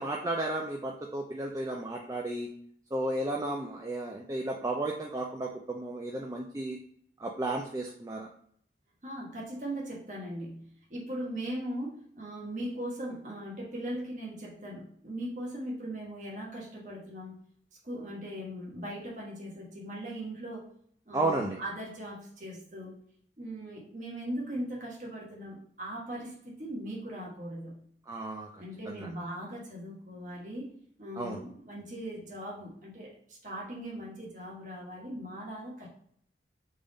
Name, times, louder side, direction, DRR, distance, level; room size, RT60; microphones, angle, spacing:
voice 1, 0.0-2.5 2.9-6.8 7.2-8.3 21.1-21.6 28.1-29.1 31.2-31.4, right 2 dB, 20° right, 0 dB, 0.4 m, -33 dB
voice 2, 9.0-17.4 17.8-20.7 21.1-23.0 23.4-27.8 28.6-30.7 31.0-35.9, right 1 dB, 45° right, -4 dB, 1.2 m, -39 dB
3.5 x 3.5 x 3.8 m, 0.63 s
head